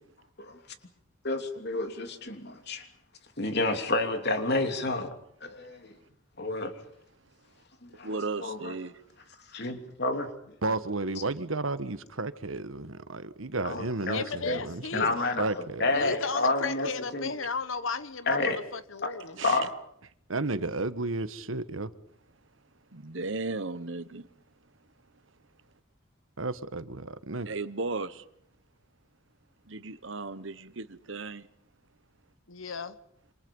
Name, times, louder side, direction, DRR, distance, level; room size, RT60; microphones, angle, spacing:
voice 1, 1.2-2.9 3.4-5.1 5.4-5.9 6.4-6.7 7.8-8.1 8.4-8.7 9.5-10.3 13.6-14.6 14.9-17.3 18.3-18.6 19.0-19.1 19.4-19.7, left 2 dB, 55° left, 3.1 m, -29 dB
voice 2, 8.0-9.0 19.4-19.6 22.9-24.3 27.4-28.2 29.7-31.5, right 3 dB, 65° right, 1.2 m, -35 dB
voice 3, 10.6-16.1 20.3-21.9 26.4-27.5, right 3 dB, 85° right, 1.4 m, -33 dB
voice 4, 14.1-15.4 15.9-19.4 32.5-33.0, left 4 dB, 75° left, 1.3 m, -35 dB
27.5 x 26.5 x 5.5 m
head